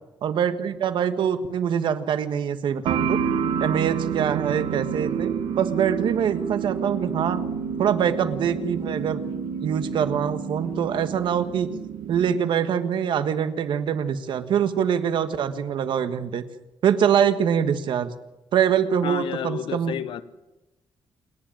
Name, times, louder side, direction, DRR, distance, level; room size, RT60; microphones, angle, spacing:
voice 1, 0.2-3.2 3.6-7.5 7.8-9.2 9.6-11.8 12.1-16.4 16.8-18.1 18.5-19.9, right 8 dB, 65° right, 10 dB, 1.5 m, -24 dB
sound 1, 2.9-12.4, right 7 dB, 85° right, 1.5 m, -29 dB
voice 2, 19.0-20.2, left 9 dB, 70° left, 13 dB, 1.1 m, -30 dB
28.0 x 10.5 x 9.0 m, 0.98 s
cardioid pair, 160°, 9 cm